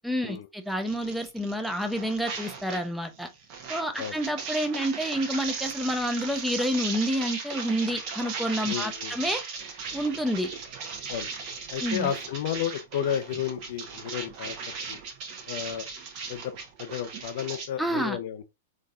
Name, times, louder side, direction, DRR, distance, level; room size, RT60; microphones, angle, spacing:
voice 1, 0.0-3.3 3.7-9.4 9.9-10.5 11.8-12.1 17.8-18.2, equal, ahead, 0.6 m, -29 dB
sound 1, 0.8-2.9 3.1-17.7, right 5 dB, 45° right, 0.9 m, -37 dB
voice 2, 8.7-9.2 11.1-11.3 11.7-14.6 14.9-15.0 15.5-15.9 16.3-16.5 16.8-18.5, left 9 dB, 60° left, 0.4 m, -32 dB
3.8 x 2.6 x 2.4 m
hypercardioid pair, 105°, 0 cm